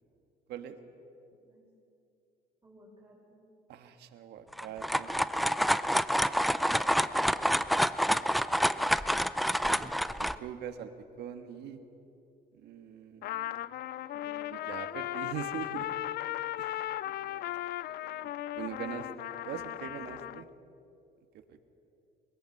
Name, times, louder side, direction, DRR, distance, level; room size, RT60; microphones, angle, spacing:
voice 1, 2.6-3.5 14.1-14.9, equal, 20° right, -7 dB, 5.7 m, -57 dB
voice 2, 3.7-5.1 8.1-8.2 9.6-10.9 11.2-11.8 12.5-13.8 14.5-15.9 16.6-19.1 19.4-20.5 21.5-21.6, right 9 dB, 75° right, 7 dB, 1.5 m, -43 dB
sound 1, 4.5-10.4, equal, ahead, 0.5 m, -27 dB
Trumpet, 13.2-20.4, left 14 dB, 70° left, 0.5 m, -37 dB
23.0 x 21.0 x 6.0 m, 2.8 s
cardioid pair, 110°, 17 cm